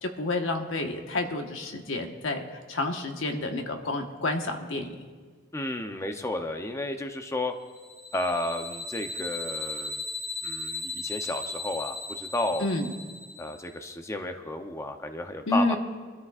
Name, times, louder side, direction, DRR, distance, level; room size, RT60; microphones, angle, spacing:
voice 1, 0.0-5.0 12.6-12.9 15.5-15.8, left 2 dB, 85° left, 4 dB, 1.3 m, -29 dB
voice 2, 5.5-7.5 8.1-10.0 10.4-12.6 13.4-15.8, left 1 dB, 15° left, 5 dB, 0.7 m, -32 dB
sound 1, 7.7-13.7, left 3 dB, 50° left, 3.0 m, -37 dB
24.5 x 13.0 x 2.5 m, 1.5 s
head